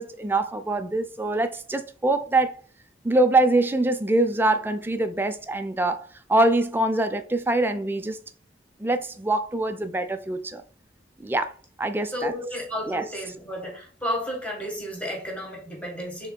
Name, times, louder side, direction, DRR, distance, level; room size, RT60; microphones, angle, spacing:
voice 1, 0.0-2.6 3.0-8.2 8.8-10.6 11.2-11.5 11.8-12.5 12.9-13.1, right 2 dB, 10° right, 0.4 m, -24 dB
voice 2, 12.1-16.3, equal, 10° left, 1.4 m, -32 dB
5.7 x 3.7 x 2.2 m
head